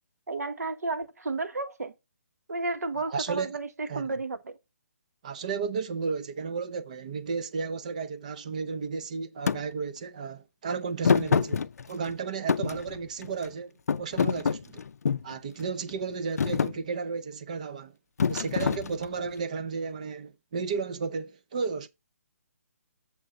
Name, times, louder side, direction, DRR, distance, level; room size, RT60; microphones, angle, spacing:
voice 1, 0.3-1.9 2.5-4.6, right 3 dB, 85° right, 1.2 m, -32 dB
voice 2, 3.0-3.5 3.9-4.2 5.2-14.8 15.2-18.0 18.3-21.9, right 5 dB, 30° right, 0.5 m, -33 dB
Thump thud, 9.5-9.6 11.0-12.1 12.5-13.5 13.9-15.3 15.9-16.1 16.4-16.8 18.2-19.3, left 6 dB, 80° left, 0.4 m, -26 dB
7.1 x 3.7 x 5.3 m
hypercardioid pair, 170°, 8 cm